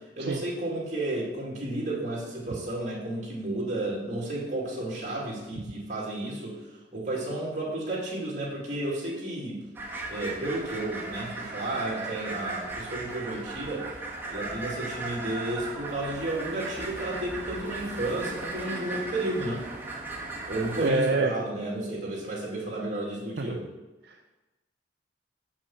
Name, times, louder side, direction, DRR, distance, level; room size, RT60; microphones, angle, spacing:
voice 1, 0.2-6.6 6.9-9.6 10.1-13.9 14.3-19.6 20.5-23.6, right 1 dB, 40° right, -3 dB, 2.4 m, -32 dB
sound 1, 9.8-20.9, right 3 dB, 10° right, 1.2 m, -37 dB
voice 2, 20.8-21.3 23.4-23.6 24.1-24.3, right 3 dB, 65° right, 3 dB, 0.5 m, -26 dB
7.3 x 6.1 x 5.5 m, 1.1 s
head